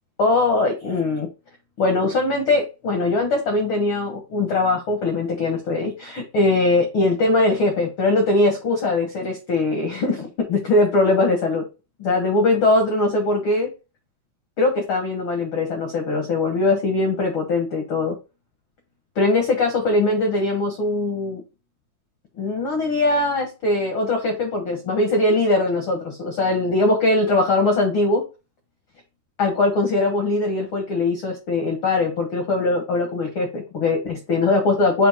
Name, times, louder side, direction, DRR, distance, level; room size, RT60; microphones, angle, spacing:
voice 1, 0.2-1.3 1.8-11.6 12.0-13.7 14.6-18.1 19.1-21.4 22.4-28.2 29.4-35.1, left 2 dB, 80° left, 3 dB, 1.2 m, -21 dB
7.1 x 2.8 x 5.1 m, 0.29 s
omnidirectional pair, 4.3 m